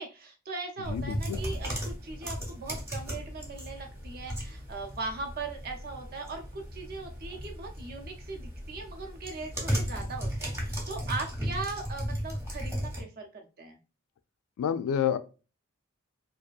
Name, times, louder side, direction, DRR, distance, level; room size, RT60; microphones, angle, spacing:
voice 1, 0.0-13.8, right 3 dB, 45° right, 0.6 m, -39 dB
sound 1, 0.8-13.0, equal, 15° right, 0.8 m, -36 dB
voice 2, 0.9-1.4 14.6-15.2, left 8 dB, 85° left, 0.3 m, -28 dB
2.7 x 2.4 x 2.3 m
head